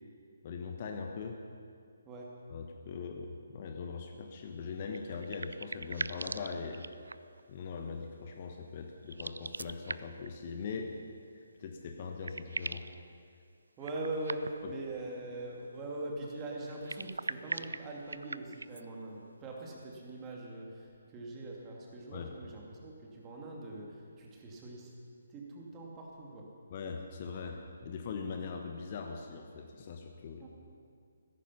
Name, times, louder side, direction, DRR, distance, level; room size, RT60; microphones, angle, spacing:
voice 1, 0.4-1.4 2.5-6.9 7.5-11.0 11.3-12.9 22.1-22.3 26.7-30.5, left 5 dB, 35° left, 4 dB, 1.1 m, -41 dB
sound 1, 4.9-7.4 9.0-10.3 11.7-11.8 12.0-13.0 13.8-14.8 16.7-18.8, right 3 dB, 65° right, 0.4 m, -41 dB
voice 2, 13.8-24.9 25.3-26.5 30.4-30.5, right 2 dB, 15° right, -2 dB, 2.5 m, -42 dB
16.0 x 14.0 x 5.7 m, 2.3 s
figure-of-eight pair, 140°, 0 cm